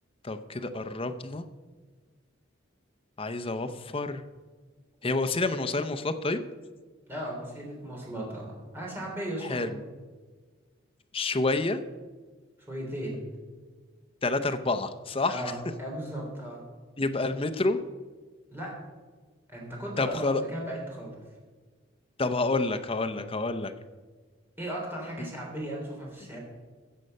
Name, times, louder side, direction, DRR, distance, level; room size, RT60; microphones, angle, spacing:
voice 1, 0.2-1.5 3.2-4.2 5.0-6.4 9.5-9.8 11.1-11.8 14.2-15.4 17.0-17.8 20.0-20.4 22.2-23.7, left 3 dB, 30° left, 8 dB, 0.6 m, -28 dB
voice 2, 7.1-9.7 12.7-13.2 15.3-16.6 18.5-18.8 19.5-21.1 24.6-26.4, right 1 dB, 10° right, -3 dB, 3.4 m, -36 dB
14.5 x 7.6 x 5.4 m, 1.4 s
head